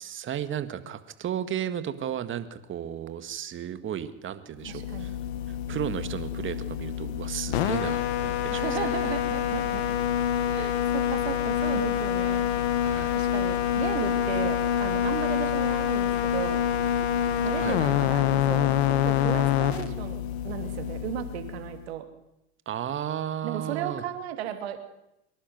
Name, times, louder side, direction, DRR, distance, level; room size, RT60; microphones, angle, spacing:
voice 1, 0.0-5.1 5.7-8.6 12.7-13.2 17.6-18.1 22.7-24.0, right 10 dB, 40° right, 11 dB, 1.9 m, -34 dB
sound 1, 4.6-21.8, left 10 dB, 85° left, 1.6 m, -26 dB
voice 2, 4.7-5.1 8.5-9.8 10.5-12.5 13.1-16.6 17.4-22.0 23.4-24.8, right 11 dB, 85° right, 7 dB, 2.7 m, -35 dB
24.0 x 11.5 x 9.4 m, 0.86 s
supercardioid pair, 95°, 31 cm